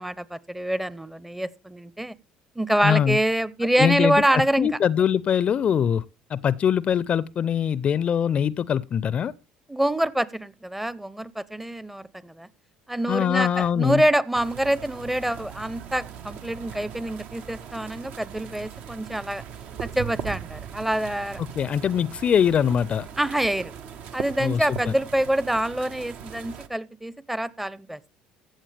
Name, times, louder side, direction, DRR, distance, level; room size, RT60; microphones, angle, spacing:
voice 1, 0.0-2.2 2.6-4.7 9.7-12.5 12.9-19.4 19.8-21.4 23.2-23.7 24.1-28.0, right 1 dB, 10° right, 0.7 m, -26 dB
voice 2, 2.8-3.2 3.8-6.0 6.3-9.3 13.1-14.0 21.6-23.1 24.4-24.9, left 8 dB, 45° left, 0.5 m, -23 dB
sound 1, 14.3-26.7, right 8 dB, 60° right, 0.8 m, -39 dB
15.5 x 7.5 x 3.3 m
hypercardioid pair, 65°, 3 cm